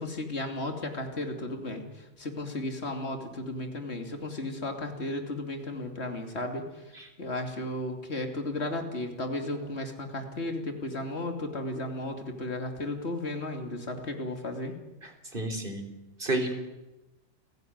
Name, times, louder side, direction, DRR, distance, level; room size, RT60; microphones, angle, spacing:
voice 1, 0.0-14.7, left 2 dB, 60° left, 5 dB, 3.1 m, -34 dB
voice 2, 15.0-15.9 16.2-16.7, right 2 dB, 45° right, 6 dB, 3.8 m, -31 dB
29.5 x 15.5 x 9.5 m, 1.0 s
omnidirectional pair, 1.3 m